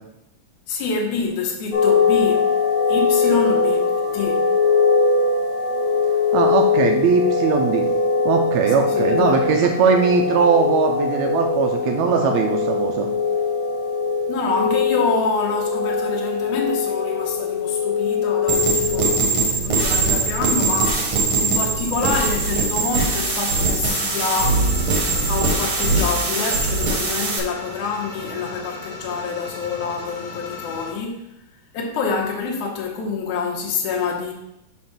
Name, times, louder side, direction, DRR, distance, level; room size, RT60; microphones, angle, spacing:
voice 1, 0.7-2.5 2.9-4.5 8.9-9.7 14.3-24.7 24.9-31.2 31.7-34.3, left 4 dB, 85° left, -1 dB, 2.3 m, -27 dB
sound 1, 1.7-19.2, left 4 dB, 35° left, 0.5 m, -21 dB
voice 2, 6.3-7.9 8.3-13.1, right 5 dB, 75° right, 3 dB, 1.8 m, -19 dB
sound 2, 18.5-27.4, right 3 dB, 55° right, 1.7 m, -21 dB
sound 3, 23.9-30.9, left 3 dB, 55° left, 1.4 m, -36 dB
6.5 x 3.4 x 5.7 m, 0.84 s
omnidirectional pair, 3.4 m